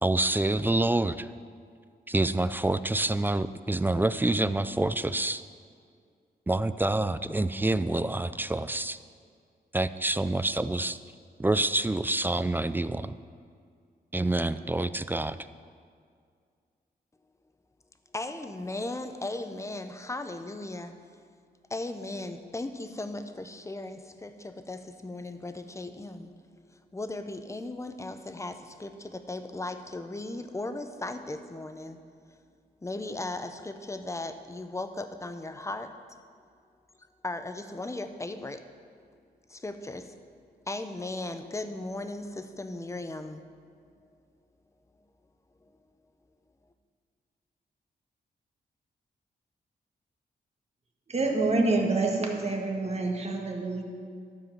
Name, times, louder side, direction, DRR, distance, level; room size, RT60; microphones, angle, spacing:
voice 1, 0.0-1.3 2.1-5.4 6.5-9.0 9.7-11.0 11.4-13.1 14.1-15.4, right 2 dB, 10° right, 13 dB, 0.3 m, -27 dB
voice 2, 18.1-21.0 21.7-26.3 26.9-32.0 32.3-32.4 32.8-36.2 37.2-38.6 39.5-40.2 40.7-43.4 44.0-44.2, left 2 dB, 15° left, 9 dB, 0.7 m, -37 dB
voice 3, 51.1-53.8, right 3 dB, 40° right, 2 dB, 1.6 m, -27 dB
12.5 x 4.8 x 7.3 m, 2.2 s
cardioid pair, 80°, 17 cm